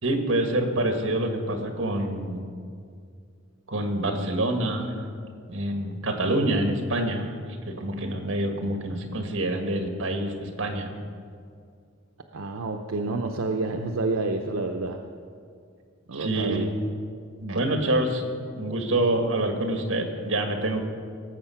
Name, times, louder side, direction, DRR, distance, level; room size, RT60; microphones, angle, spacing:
voice 1, 0.0-2.4 3.7-4.9 5.5-7.3 7.7-10.9 16.1-16.7 17.4-18.2 18.5-20.8, right 1 dB, 65° right, 5 dB, 1.6 m, -26 dB
voice 2, 12.3-15.0 16.1-16.8, right 3 dB, 85° right, 4 dB, 0.7 m, -29 dB
19.0 x 7.6 x 5.7 m, 2.2 s
head